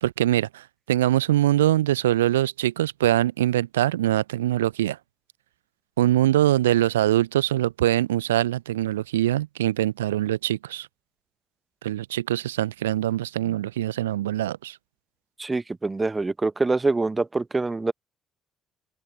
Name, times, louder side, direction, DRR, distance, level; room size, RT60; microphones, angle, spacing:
voice 1, 0.0-5.0 6.0-10.9 11.8-14.8, right 13 dB, 75° right, 0.8 m, -23 dB
voice 2, 15.4-17.9, right 3 dB, 20° right, 1.2 m, -25 dB
open air
figure-of-eight pair, 45°, 0 cm